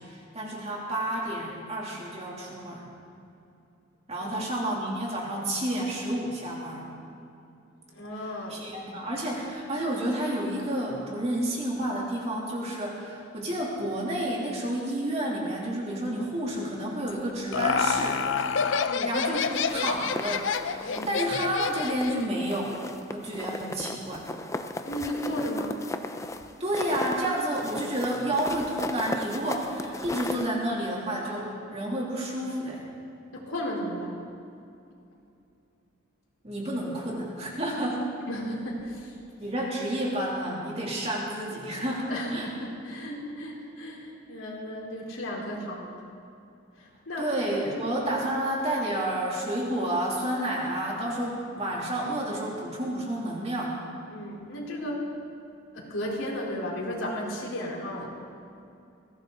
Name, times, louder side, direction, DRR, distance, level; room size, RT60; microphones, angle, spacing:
voice 1, 0.0-2.9 4.1-6.9 8.1-18.3 19.0-22.8 23.1-24.3 26.6-32.8 36.4-38.1 39.4-42.5 47.2-53.8, right 1 dB, 30° right, -3 dB, 3.1 m, -30 dB
voice 2, 7.9-8.6 18.8-19.1 20.9-21.2 24.8-25.8 33.3-34.2 38.3-39.2 42.1-45.9 46.8-47.3 47.6-47.7 54.1-55.0 55.7-58.1, equal, 90° left, -3 dB, 4.0 m, -34 dB
Laughter, 17.1-22.2, left 6 dB, 70° left, 0.6 m, -28 dB
sound 1, 19.5-21.3 21.6-22.2 22.5-30.5, left 2 dB, 15° left, 0.6 m, -36 dB
20.5 x 16.5 x 4.0 m, 2.6 s
head